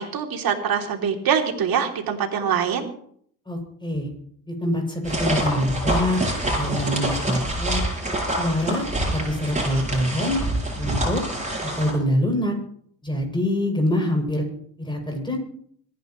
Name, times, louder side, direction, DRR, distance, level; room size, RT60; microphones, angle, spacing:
voice 1, 0.0-2.9, right 7 dB, 60° right, 3 dB, 3.2 m, -24 dB
voice 2, 3.5-4.1 4.5-7.8 8.3-8.9 9.1-10.4 10.7-11.2 11.6-12.5 13.0-14.4 14.8-15.4, left 1 dB, 10° left, 1 dB, 7.4 m, -25 dB
sound 1, 5.0-11.9, right 1 dB, 20° right, 7.4 m, -26 dB
26.0 x 11.0 x 3.2 m, 0.62 s
hypercardioid pair, 60°, 40 cm